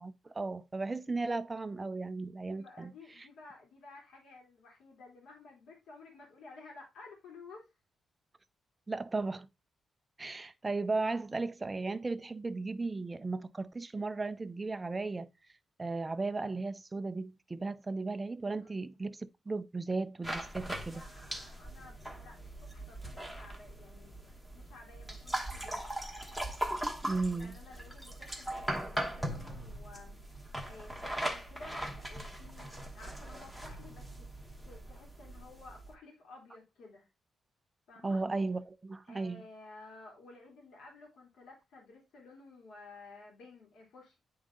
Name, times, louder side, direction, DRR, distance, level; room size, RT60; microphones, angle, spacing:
voice 1, 0.0-2.9 8.9-9.5 10.2-15.3 15.8-21.0 27.0-27.6 38.0-39.4, right 3 dB, 20° right, 0.4 m, -35 dB
voice 2, 2.5-7.7 18.5-19.0 20.9-25.9 27.3-37.1 37.9-38.2 39.1-44.2, left 3 dB, 90° left, 2.8 m, -54 dB
sound 1, 20.2-35.9, right 1 dB, 5° left, 1.1 m, -40 dB
9.5 x 3.6 x 3.7 m
wide cardioid pair, 145°, 0 cm